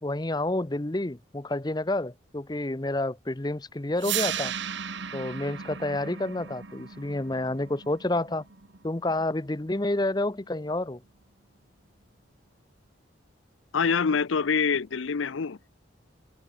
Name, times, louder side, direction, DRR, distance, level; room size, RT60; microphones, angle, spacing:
voice 1, 0.0-4.5 5.1-8.5 8.8-11.0, left 2 dB, 20° left, 0.7 m, -29 dB
sound 1, 4.0-10.0, right 9 dB, 65° right, 1.3 m, -36 dB
voice 2, 13.7-15.7, left 5 dB, 80° left, 0.6 m, -25 dB
head